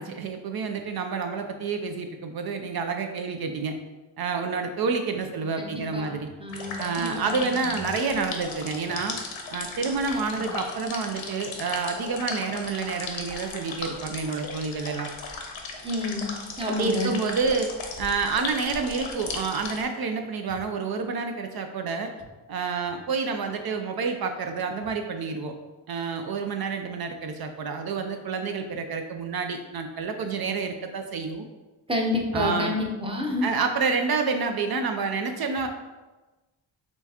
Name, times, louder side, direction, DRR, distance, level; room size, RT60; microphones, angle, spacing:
voice 1, 0.0-3.8 4.2-6.3 6.8-9.2 9.5-15.1 16.7-22.1 22.5-25.5 25.9-31.5 32.3-32.8 33.4-35.7, right 4 dB, 55° right, 5 dB, 0.5 m, -29 dB
voice 2, 5.6-6.1 6.4-7.8 10.3-10.5 15.8-16.3 16.6-17.1 31.9-33.5, left 2 dB, 10° right, 0 dB, 0.7 m, -29 dB
sound 1, 6.5-19.8, left 4 dB, 80° left, 0.8 m, -37 dB
4.4 x 3.4 x 2.8 m, 1.2 s
cardioid pair, 85°, 46 cm